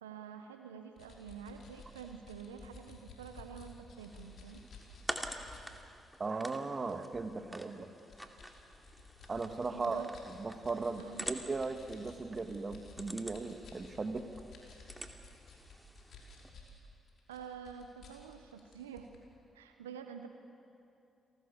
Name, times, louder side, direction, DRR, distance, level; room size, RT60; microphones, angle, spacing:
voice 1, 0.0-4.7 9.7-10.1 11.0-11.3 17.3-19.1 19.5-20.3, right 7 dB, 90° right, 7 dB, 0.8 m, -48 dB
sound 1, 1.0-5.6 6.1-6.3 6.9-7.3 8.0-16.8 17.1-19.2, left 4 dB, 60° left, 5.3 m, -54 dB
sound 2, 4.0-16.5, equal, ahead, 2.6 m, -48 dB
voice 2, 6.2-7.9 9.3-14.3, right 3 dB, 35° right, 8 dB, 1.8 m, -37 dB
30.0 x 18.5 x 7.2 m, 2.7 s
hypercardioid pair, 45°, 0 cm